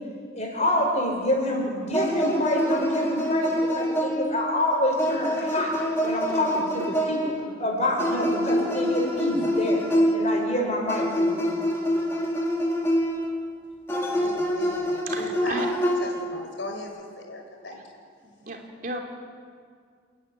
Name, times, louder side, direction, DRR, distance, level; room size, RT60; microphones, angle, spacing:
voice 1, 0.3-5.7 6.0-9.8 10.1-11.5, left 1 dB, 40° left, -1 dB, 6.1 m, -27 dB
sound 1, 1.9-4.5 5.0-7.4 8.0-10.5 10.9-13.3 13.9-16.3, equal, 15° left, 2.7 m, -26 dB
voice 2, 14.1-15.7 16.0-17.8, left 2 dB, 90° left, 2 dB, 4.5 m, -38 dB
voice 3, 15.1-15.7 18.5-19.0, right 2 dB, 50° right, 1 dB, 2.9 m, -33 dB
29.5 x 11.5 x 9.9 m, 2.1 s
head